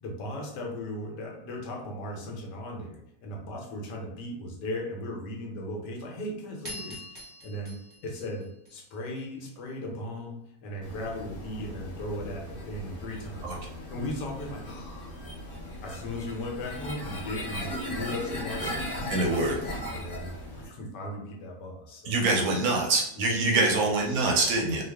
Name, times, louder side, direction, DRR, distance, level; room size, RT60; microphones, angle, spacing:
voice 1, 0.0-7.7 8.0-8.5 8.7-15.2 15.8-19.6 19.9-22.4 23.2-24.3, left 1 dB, 75° left, 0 dB, 1.3 m, -37 dB
sound 1, 6.6-9.2, left 1 dB, 30° right, 0.4 m, -44 dB
sound 2, 10.8-20.7, left 1 dB, 40° left, 0.8 m, -38 dB
voice 2, 19.1-19.5 22.1-24.8, right 3 dB, 70° right, 1 dB, 1.0 m, -25 dB
3.0 x 2.3 x 3.3 m, 0.78 s
omnidirectional pair, 1.8 m